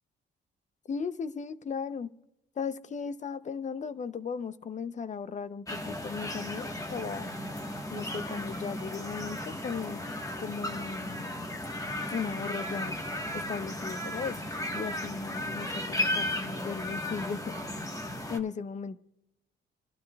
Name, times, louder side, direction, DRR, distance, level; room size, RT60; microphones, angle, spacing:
voice 1, 0.9-2.1 2.6-7.3 7.9-11.3 12.1-13.0 13.3-14.4 14.7-17.6 18.3-19.0, left 5 dB, 40° left, 0.7 m, -36 dB
sound 1, 5.7-18.4, left 1 dB, 15° left, 1.3 m, -35 dB
26.5 x 12.0 x 2.3 m
cardioid pair, 90°, 20 cm